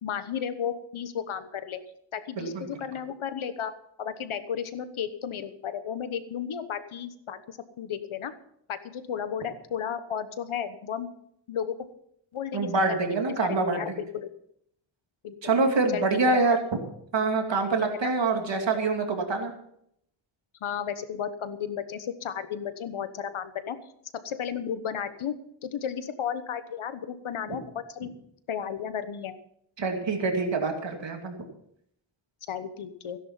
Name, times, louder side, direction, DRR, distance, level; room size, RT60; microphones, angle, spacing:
voice 1, 0.0-1.8 2.1-3.7 4.0-8.3 8.7-11.1 11.5-11.9 12.3-12.7 13.0-13.2 13.4-14.3 15.2-15.4 15.9-16.6 18.0-18.1 20.6-23.8 24.2-25.4 25.6-28.1 28.5-29.4 32.5-33.2, left 8 dB, 90° left, 11 dB, 1.2 m, -33 dB
voice 2, 2.4-2.7 12.5-14.0 15.4-16.6 17.1-19.5 29.8-31.3, right 3 dB, 65° right, 3 dB, 2.7 m, -25 dB
16.5 x 11.0 x 5.7 m, 0.71 s
wide cardioid pair, 150°, 48 cm